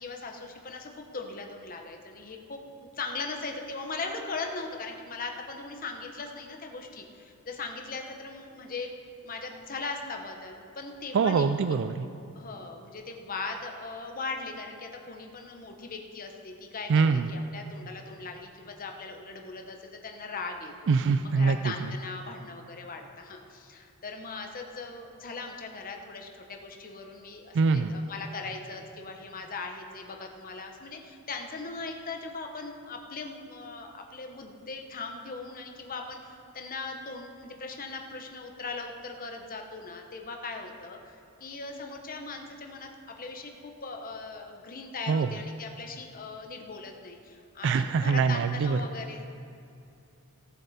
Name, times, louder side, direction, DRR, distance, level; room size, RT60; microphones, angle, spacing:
voice 1, 0.0-8.9 9.2-11.8 12.3-20.9 21.2-42.9 43.2-49.4, left 3 dB, 40° left, 3 dB, 1.0 m, -39 dB
voice 2, 11.1-12.1 16.9-17.3 20.9-21.7 27.5-27.9 45.1-45.3 47.6-48.8, right 5 dB, 55° right, 10 dB, 0.3 m, -24 dB
18.0 x 7.1 x 4.3 m, 2.6 s
head